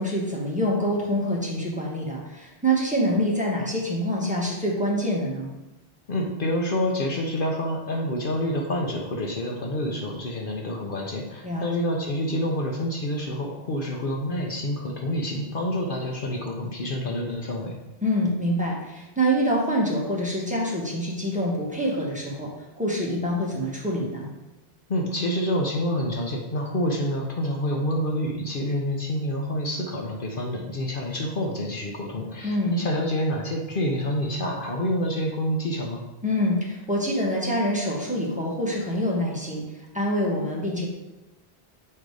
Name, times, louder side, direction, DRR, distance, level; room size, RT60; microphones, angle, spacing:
voice 1, 0.0-5.5 11.4-11.6 18.0-24.3 32.4-32.8 36.2-39.6 39.9-40.9, equal, 5° right, -4 dB, 1.5 m, -26 dB
voice 2, 6.1-17.8 24.9-36.0, equal, 55° left, 0 dB, 1.0 m, -27 dB
7.6 x 3.9 x 4.8 m, 1.0 s
omnidirectional pair, 1.1 m